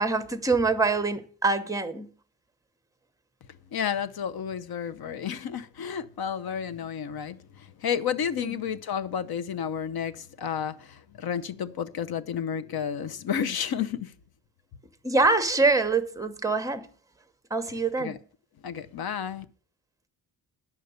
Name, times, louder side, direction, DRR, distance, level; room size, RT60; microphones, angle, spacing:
voice 1, 0.0-2.1 8.4-8.6 15.0-16.9 17.5-18.2, right 3 dB, 10° right, 0.9 m, -25 dB
voice 2, 3.7-14.1 18.0-18.2 18.6-19.4, left 8 dB, 55° left, 0.8 m, -31 dB
10.0 x 6.6 x 8.0 m
wide cardioid pair, 170°, 43 cm